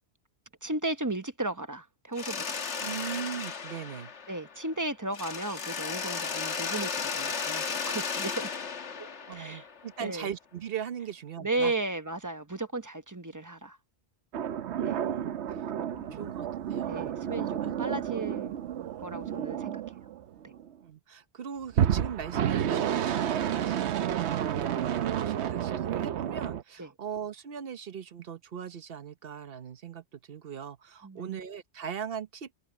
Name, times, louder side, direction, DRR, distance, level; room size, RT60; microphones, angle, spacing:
voice 1, 0.6-2.6 4.3-8.5 9.3-9.7 10.0-10.3 11.4-13.8 14.8-15.0 15.9-16.3 16.9-18.6 19.0-19.8 20.4-20.5 26.8-26.9 31.0-31.4, right 2 dB, 20° right, 0.9 m, -35 dB
Mechanisms, 2.2-4.8 5.1-10.0, left 5 dB, 90° left, 1.6 m, -35 dB
voice 2, 2.8-4.1 9.3-11.7 14.8-15.7 16.1-17.0 17.6-17.7 20.8-32.6, right 8 dB, 60° right, 1.1 m, -39 dB
sound 1, 14.3-20.7 21.7-26.6, right 9 dB, 75° right, 1.0 m, -30 dB
open air
omnidirectional pair, 1.1 m